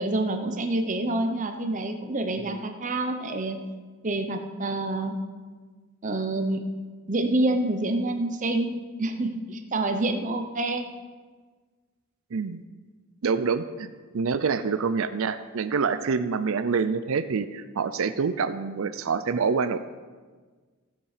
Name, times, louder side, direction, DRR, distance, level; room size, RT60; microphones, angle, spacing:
voice 1, 0.0-3.6 4.0-5.2 6.0-6.6 7.1-10.9, right 2 dB, 35° right, 6 dB, 0.8 m, -27 dB
voice 2, 12.3-12.6 13.2-19.8, right 5 dB, 65° right, 11 dB, 0.5 m, -26 dB
16.0 x 7.2 x 5.0 m, 1.4 s
head